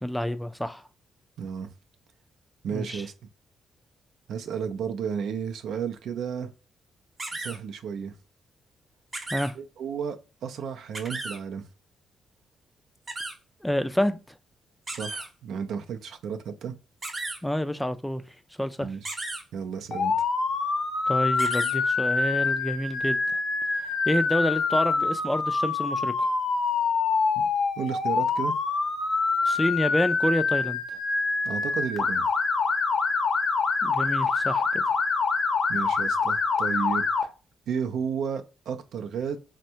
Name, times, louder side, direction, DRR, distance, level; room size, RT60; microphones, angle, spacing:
voice 1, 0.0-0.8 2.7-3.0 9.3-9.5 13.6-14.2 17.4-18.2 18.6-18.9 21.1-23.2 23.8-26.3 29.4-30.8 33.8-34.8, equal, 5° left, 0.3 m, -28 dB
voice 2, 1.4-1.7 2.6-3.1 4.3-6.5 7.3-8.1 9.6-11.7 14.9-16.8 18.8-19.1 19.5-20.1 27.4-27.5 27.8-28.5 31.4-32.2 35.7-37.1 37.7-39.4, right 7 dB, 75° right, 0.4 m, -32 dB
sound 1, 7.2-7.6 9.1-9.5 10.9-11.4 13.1-13.3 14.9-15.3 17.0-17.4 19.0-19.4 21.4-21.7, right 2 dB, 30° right, 0.7 m, -34 dB
Motor vehicle (road) / Siren, 19.9-37.2, left 4 dB, 55° left, 0.6 m, -25 dB
3.4 x 2.1 x 2.7 m
cardioid pair, 85°, 0 cm